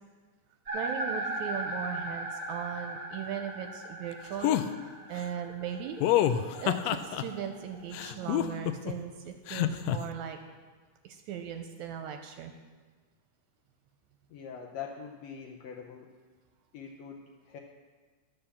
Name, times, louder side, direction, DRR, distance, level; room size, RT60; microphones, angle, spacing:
sound 1, 0.7-8.7, right 1 dB, 35° right, 2.1 m, -39 dB
voice 1, 0.7-4.6 5.1-6.0 6.6-10.4 11.0-12.5, right 8 dB, 80° right, 5 dB, 1.9 m, -38 dB
sound 2, 4.4-4.7 6.0-7.2 7.9-8.9 9.5-10.0, left 12 dB, 90° left, 1.5 m, -26 dB
voice 2, 14.3-16.1 16.7-17.6, left 7 dB, 70° left, 0 dB, 1.6 m, -43 dB
11.0 x 6.8 x 7.0 m, 1.4 s
omnidirectional pair, 3.5 m